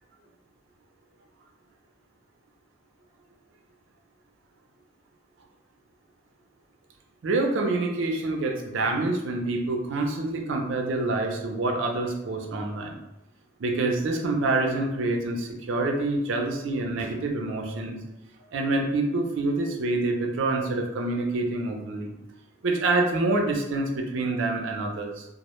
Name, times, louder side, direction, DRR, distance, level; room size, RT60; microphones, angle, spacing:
voice 1, 7.2-12.9 13.6-18.0 18.5-22.1 22.6-25.2, right 2 dB, 75° right, 2 dB, 0.4 m, -26 dB
2.0 x 2.0 x 2.9 m, 0.88 s
head